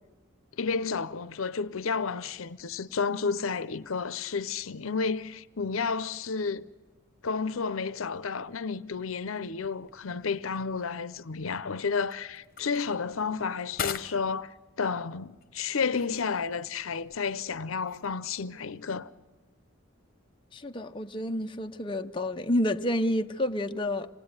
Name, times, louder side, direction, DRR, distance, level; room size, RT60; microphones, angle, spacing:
voice 1, 0.6-6.7 7.2-19.1, left 5 dB, 80° left, 0.7 m, -31 dB
sound 1, 9.4-18.6, left 7 dB, 45° left, 1.2 m, -44 dB
voice 2, 20.5-24.1, left 1 dB, 25° left, 0.8 m, -29 dB
26.0 x 18.5 x 9.7 m
head